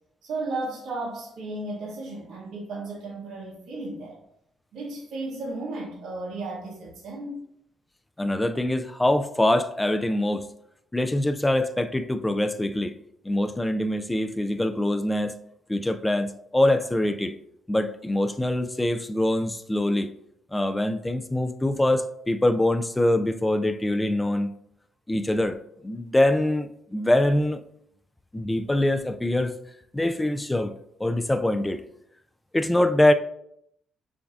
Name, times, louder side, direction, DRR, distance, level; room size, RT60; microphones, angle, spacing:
voice 1, 0.2-4.2 4.7-7.4, right 2 dB, 70° right, 0.9 m, -34 dB
voice 2, 8.2-10.5 10.9-12.9 13.2-15.3 15.7-17.3 17.7-20.1 20.5-24.5 25.1-25.6 25.8-27.6 28.3-29.5 29.9-30.7 31.0-31.8 32.5-33.1, left 1 dB, 10° left, 0.3 m, -24 dB
6.8 x 2.6 x 2.4 m
cardioid pair, 90°, 0 cm